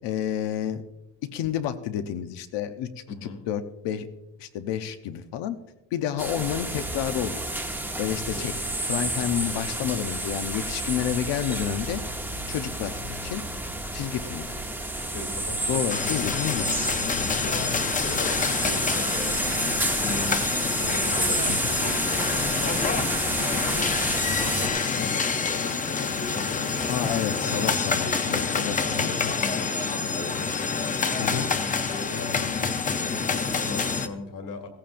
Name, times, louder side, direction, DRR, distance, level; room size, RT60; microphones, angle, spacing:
voice 1, 0.0-0.8 1.3-2.9 3.2-4.1 4.4-5.6 5.9-7.4 8.0-8.5 8.9-12.0 12.5-13.4 13.9-14.5 15.7-16.7 21.5-21.7 26.9-29.1 31.2-31.5, left 10 dB, 75° left, 9 dB, 0.9 m, -30 dB
voice 2, 3.1-3.4 8.3-8.5 15.0-16.2 17.2-19.3 19.6-23.5 24.4-26.9 27.4-27.6 27.9-28.5 28.8-31.5 31.9-32.5 32.9-34.7, left 3 dB, 50° left, 5 dB, 2.1 m, -39 dB
sound 1, 6.2-24.7, right 1 dB, 5° right, 0.9 m, -30 dB
sound 2, 15.9-34.1, left 5 dB, 20° left, 0.5 m, -27 dB
16.0 x 15.0 x 2.6 m, 0.96 s
cardioid pair, 170°, 42 cm